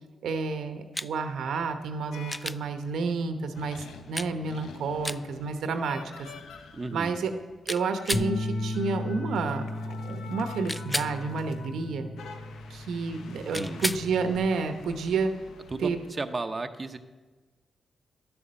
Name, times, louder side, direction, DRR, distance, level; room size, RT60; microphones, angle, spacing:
voice 1, 0.2-6.3 6.9-7.3 7.7-12.1 12.7-15.3 15.8-16.0, right 4 dB, 85° right, 8 dB, 1.0 m, -30 dB
sound 1, 0.9-1.1 2.3-2.6 4.1-4.3 5.0-5.2 7.7-8.3 10.7-11.1 13.5-14.1 16.3-16.4, left 1 dB, 10° left, 0.3 m, -32 dB
sound 2, 2.1-2.9 3.5-16.1, left 5 dB, 85° left, 1.0 m, -47 dB
voice 2, 6.7-7.2 13.5-13.9 15.7-17.0, right 3 dB, 35° right, 7 dB, 0.8 m, -34 dB
Bass guitar, 8.1-14.4, left 2 dB, 50° left, 1.4 m, -36 dB
11.5 x 7.1 x 7.5 m, 1.3 s
cardioid pair, 65°, 0 cm